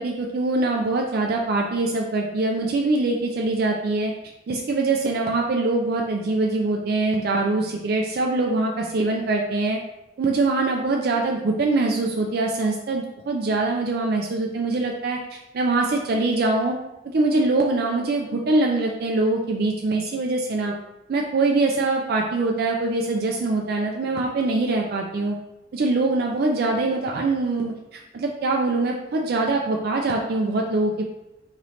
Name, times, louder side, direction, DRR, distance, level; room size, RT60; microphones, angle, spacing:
voice 1, 0.0-4.1 4.5-9.8 10.2-16.8 17.0-20.7 21.1-25.3 25.7-31.0, right 2 dB, 60° right, 1 dB, 0.4 m, -23 dB
4.0 x 3.0 x 3.1 m, 0.96 s
head